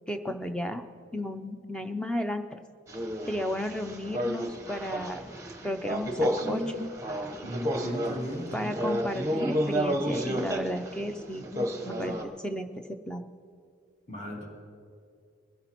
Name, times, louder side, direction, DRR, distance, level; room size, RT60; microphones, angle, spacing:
voice 1, 0.1-0.8 1.1-2.6 3.3-5.2 5.6-6.8 8.5-13.3, equal, 5° left, 7 dB, 0.4 m, -34 dB
sound 1, 2.9-12.2, equal, 15° right, 0.9 m, -31 dB
voice 2, 7.4-8.7 14.1-14.4, equal, 35° left, -4 dB, 2.8 m, -36 dB
21.0 x 12.0 x 2.9 m, 2.2 s
head